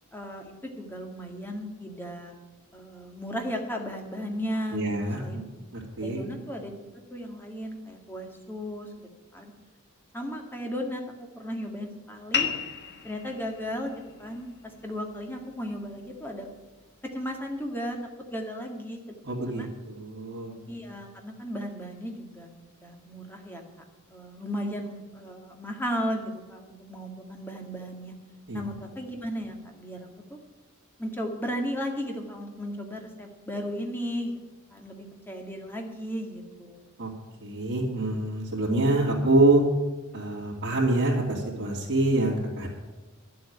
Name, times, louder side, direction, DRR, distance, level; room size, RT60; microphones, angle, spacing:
voice 1, 0.1-2.4 2.7-5.4 6.0-6.7 7.1-9.5 10.1-12.5 13.0-16.5 17.1-18.0 18.3-19.0 19.5-19.7 20.7-22.5 22.8-23.6 24.1-28.1 28.5-30.4 31.0-34.3 34.7-36.8, equal, 10° left, 2 dB, 1.9 m, -35 dB
voice 2, 4.7-5.5 5.7-6.2 19.2-20.5 28.5-28.6 37.0-37.1 37.4-39.6 40.1-42.7, right 2 dB, 50° right, -8 dB, 2.8 m, -25 dB
sound 1, 12.3-17.4, left 7 dB, 50° left, 1.4 m, -36 dB
12.0 x 7.7 x 9.5 m, 1.2 s
head